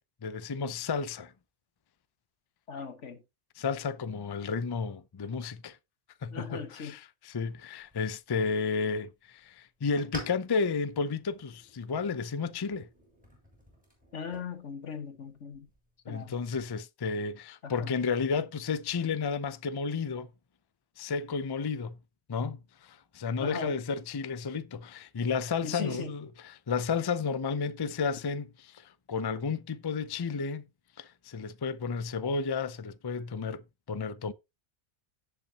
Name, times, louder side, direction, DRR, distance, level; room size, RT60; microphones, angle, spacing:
voice 1, 0.2-1.3 3.6-5.8 6.2-12.9 16.1-20.3 21.0-22.0 22.3-30.6 31.0-33.6 33.9-34.3, left 5 dB, 35° left, 0.4 m, -32 dB
voice 2, 2.7-3.2 6.3-7.0 14.1-15.7 16.1-16.3 17.6-17.9 23.4-23.8 25.6-26.1, left 6 dB, 90° left, 1.8 m, -38 dB
sound 1, 7.8-16.8, equal, 5° right, 7.2 m, -51 dB
17.0 x 5.7 x 2.9 m
omnidirectional pair, 1.2 m